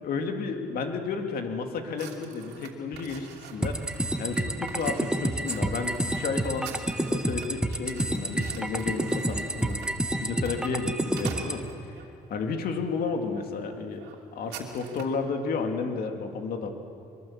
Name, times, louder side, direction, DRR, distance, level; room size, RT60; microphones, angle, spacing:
voice 1, 0.0-9.8 10.2-12.0 12.3-16.7, left 4 dB, 60° left, 4 dB, 2.6 m, -32 dB
sound 1, 2.0-12.1 12.7-12.9 13.3-13.5 13.7-15.2, right 8 dB, 90° right, 2.9 m, -46 dB
sound 2, 3.6-11.6, right 1 dB, 5° right, 1.3 m, -29 dB
23.5 x 23.0 x 7.4 m, 2.6 s
cardioid pair, 110°, 17 cm